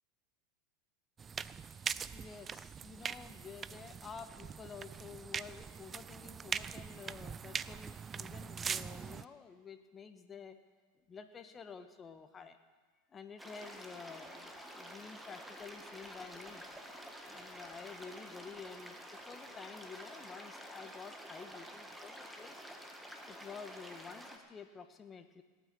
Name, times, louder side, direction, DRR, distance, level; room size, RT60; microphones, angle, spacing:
sound 1, 1.2-9.2, right 6 dB, 25° right, 0.4 m, -42 dB
voice 1, 2.1-10.6 11.1-12.6 13.1-16.6 17.2-22.6 23.3-25.4, left 5 dB, 25° left, 8 dB, 1.4 m, -50 dB
sound 2, 13.4-24.4, equal, 5° right, 1.8 m, -50 dB
18.5 x 9.1 x 7.0 m, 1.4 s
hypercardioid pair, 95°, 0 cm